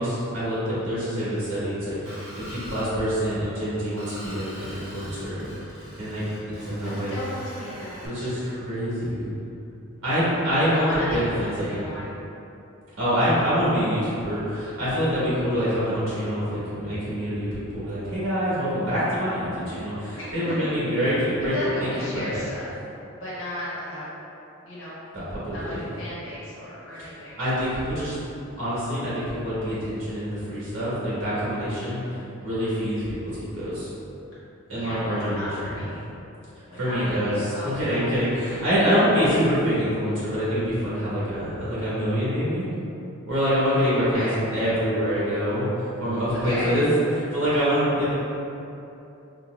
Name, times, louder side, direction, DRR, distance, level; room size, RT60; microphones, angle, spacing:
voice 1, 0.0-5.4 6.0-7.1 8.0-9.3 10.0-11.8 13.0-22.4 25.1-25.9 27.0-27.1 27.4-28.1 28.6-33.9 34.7-35.5 36.7-42.6 43.3-48.1, equal, 70° right, -11 dB, 1.5 m, -25 dB
Screech, 2.0-2.9 4.0-8.1, equal, 50° right, 1.1 m, -43 dB
voice 2, 6.8-8.5 10.0-12.1 20.1-20.5 21.5-22.7 23.1-24.0 24.6-24.9 25.5-27.4 31.7-32.2 34.7-36.1 36.7-38.2 38.4-38.5 38.8-39.0 44.1-44.4 46.4-46.8, left 1 dB, 75° left, -10 dB, 1.2 m, -35 dB
3.9 x 2.8 x 2.4 m, 2.8 s
head